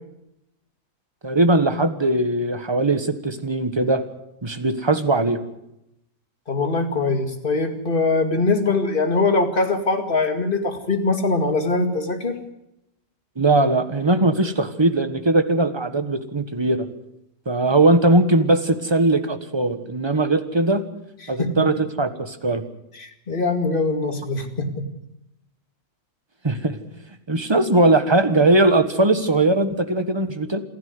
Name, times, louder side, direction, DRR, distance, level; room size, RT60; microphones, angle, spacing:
voice 1, 1.2-4.0 4.4-5.4 13.4-16.9 17.4-20.8 21.3-22.6 26.4-26.8 27.3-30.6, right 2 dB, 15° right, 9 dB, 1.4 m, -20 dB
voice 2, 6.5-12.4 21.4-21.5 22.9-24.8, left 3 dB, 35° left, 5 dB, 2.3 m, -22 dB
28.0 x 10.5 x 9.5 m, 0.85 s
omnidirectional pair, 1.7 m